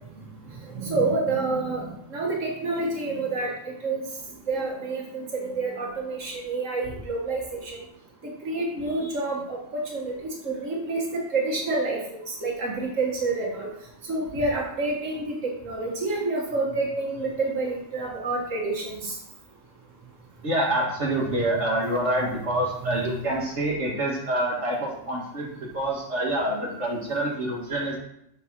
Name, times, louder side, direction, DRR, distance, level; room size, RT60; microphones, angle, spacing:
voice 1, 0.7-3.5 3.8-4.0 4.5-7.8 8.2-12.0 12.3-13.7 14.1-19.2 21.3-21.6 22.9-23.0, right 3 dB, 85° right, -1 dB, 2.0 m, -28 dB
voice 2, 20.4-28.0, right 1 dB, 65° right, -3 dB, 2.0 m, -26 dB
7.3 x 5.3 x 6.0 m, 0.75 s
omnidirectional pair, 1.3 m